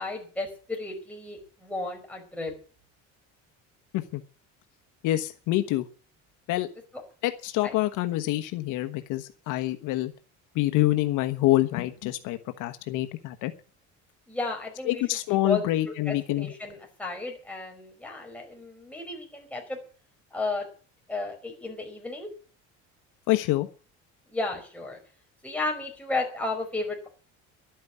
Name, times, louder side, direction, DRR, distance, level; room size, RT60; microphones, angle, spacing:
voice 1, 0.0-2.5 7.6-7.7 14.3-15.0 15.4-15.6 16.1-19.8 20.3-20.7 21.1-22.3 24.3-25.0 25.4-27.1, left 3 dB, 5° left, 0 dB, 4.9 m, -33 dB
voice 2, 5.0-5.9 6.5-6.7 7.2-10.1 10.5-13.5 14.9-16.5 23.3-23.7, left 16 dB, 70° left, 8 dB, 1.2 m, -26 dB
12.0 x 9.4 x 8.4 m, 0.39 s
cardioid pair, 135°, 32 cm